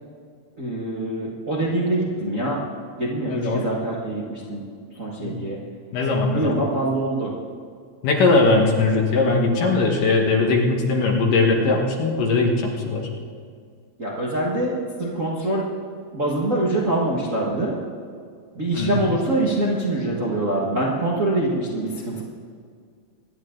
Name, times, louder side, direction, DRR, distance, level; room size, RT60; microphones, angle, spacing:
voice 1, 0.6-2.6 3.0-4.6 4.9-5.6 6.3-7.3 14.0-15.7 16.1-17.7 18.5-22.2, right 1 dB, 65° right, -4 dB, 0.7 m, -24 dB
voice 2, 3.3-3.6 5.2-5.4 5.9-6.6 8.0-13.1 18.7-19.0, left 3 dB, 65° left, 0 dB, 2.9 m, -20 dB
25.0 x 10.5 x 3.9 m, 2.1 s
omnidirectional pair, 4.4 m